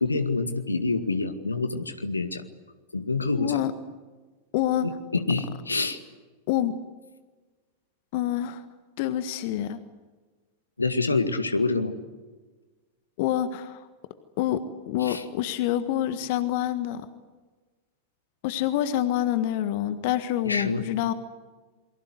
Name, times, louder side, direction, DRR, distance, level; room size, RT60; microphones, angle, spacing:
voice 1, 0.0-2.4 2.9-3.6 4.8-6.0 10.8-11.9 15.0-15.2 20.4-20.8, left 3 dB, 80° left, 8 dB, 2.1 m, -27 dB
voice 2, 3.4-3.7 4.5-4.9 6.5-6.7 8.1-8.6 9.0-9.8 13.2-13.9 14.4-17.1 18.4-21.1, left 12 dB, 50° left, 11 dB, 1.5 m, -27 dB
28.5 x 23.5 x 8.0 m, 1.3 s
figure-of-eight pair, 90°, 0 cm